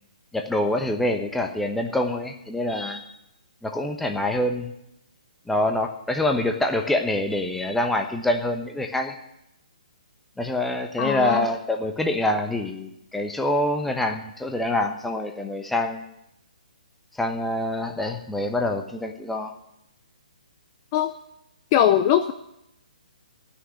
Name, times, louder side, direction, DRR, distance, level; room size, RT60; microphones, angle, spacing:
voice 1, 0.3-3.0 3.6-4.7 5.5-9.1 10.4-16.1 17.2-19.5, left 1 dB, 5° left, 3 dB, 1.0 m, -25 dB
voice 2, 11.0-11.5 20.9-21.1 21.7-22.3, left 10 dB, 30° left, 9 dB, 0.6 m, -20 dB
14.5 x 6.4 x 9.6 m, 0.84 s
hypercardioid pair, 150°, 4 cm